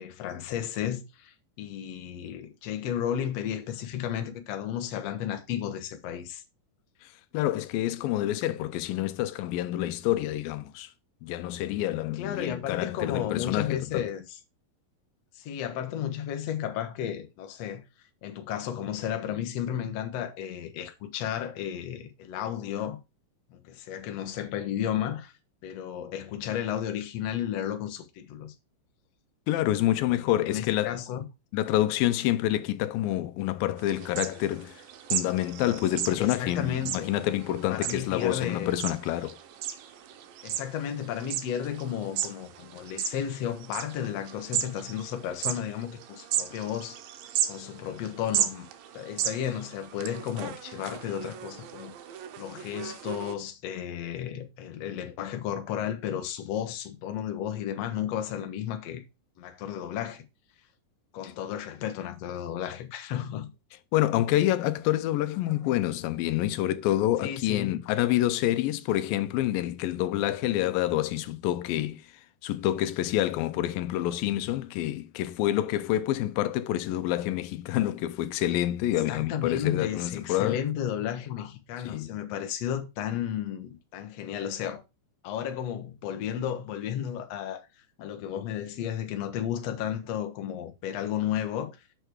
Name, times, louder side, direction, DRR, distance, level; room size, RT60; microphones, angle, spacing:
voice 1, 0.0-6.4 12.2-14.4 15.4-17.8 18.2-23.0 23.5-25.3 25.6-28.6 30.0-31.3 36.1-37.1 37.7-38.8 40.4-47.0 47.5-48.7 48.9-51.9 52.4-59.0 59.4-60.2 61.1-63.5 65.6-65.7 67.2-67.8 79.1-84.8 85.2-87.7 88.0-91.8, left 10 dB, 60° left, 1.9 m, -33 dB
voice 2, 7.3-10.9 11.2-14.0 29.5-31.0 31.5-34.8 35.1-39.4 63.9-72.0 72.4-80.6 81.9-82.2 88.0-88.1, left 14 dB, 85° left, 2.4 m, -27 dB
sound 1, 33.8-53.4, right 10 dB, 90° right, 2.7 m, -36 dB
6.9 x 6.5 x 4.6 m
omnidirectional pair, 4.0 m